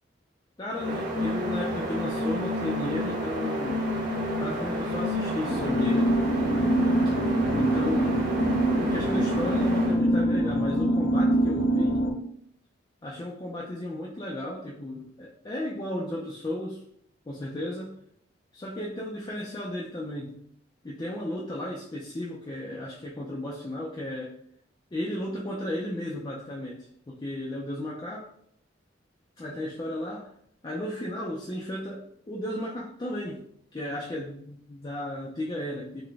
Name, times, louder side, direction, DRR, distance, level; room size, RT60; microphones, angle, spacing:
voice 1, 0.6-3.9 4.4-6.2 7.1-7.2 7.6-8.3 8.8-12.1 13.0-16.8 17.3-18.0 18.5-20.4 20.8-24.3 24.9-28.3 29.4-30.3 30.6-36.0, left 1 dB, 25° left, -4 dB, 0.4 m, -34 dB
sound 1, 0.7-10.0, left 1 dB, 60° right, 1.2 m, -30 dB
sound 2, 5.4-12.1, right 1 dB, 65° left, 0.6 m, -24 dB
3.9 x 2.2 x 3.3 m, 0.67 s
head